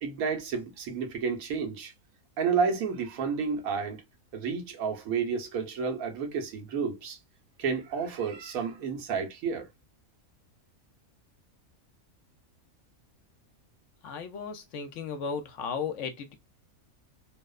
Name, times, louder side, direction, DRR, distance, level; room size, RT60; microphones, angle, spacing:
voice 1, 0.0-1.9 2.4-4.0 4.3-7.2 7.6-9.7, right 5 dB, 85° right, 1.2 m, -31 dB
voice 2, 14.0-16.4, left 6 dB, 70° left, 0.8 m, -35 dB
2.8 x 2.0 x 2.2 m
omnidirectional pair, 1.4 m